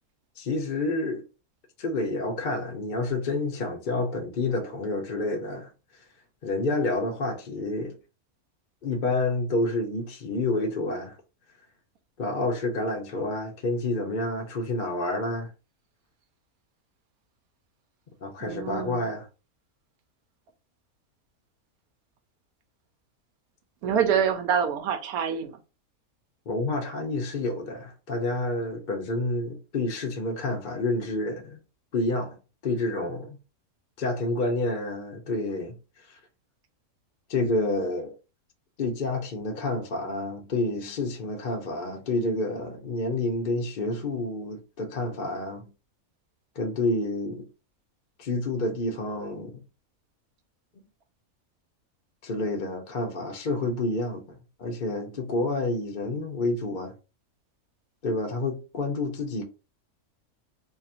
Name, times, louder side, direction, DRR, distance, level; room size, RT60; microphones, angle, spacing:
voice 1, 0.4-1.2 1.8-5.7 6.4-8.0 8.8-11.2 12.2-15.5 18.2-19.3 26.5-31.6 31.9-32.4 32.6-33.4 34.0-35.8 37.3-38.1 38.8-45.7 46.6-47.4 48.2-49.6 52.2-56.9 58.0-59.4, left 2 dB, 50° left, 0.6 m, -29 dB
voice 2, 18.4-19.1 23.8-25.6, right 8 dB, 90° right, 1.1 m, -26 dB
2.8 x 2.5 x 4.2 m
omnidirectional pair, 1.5 m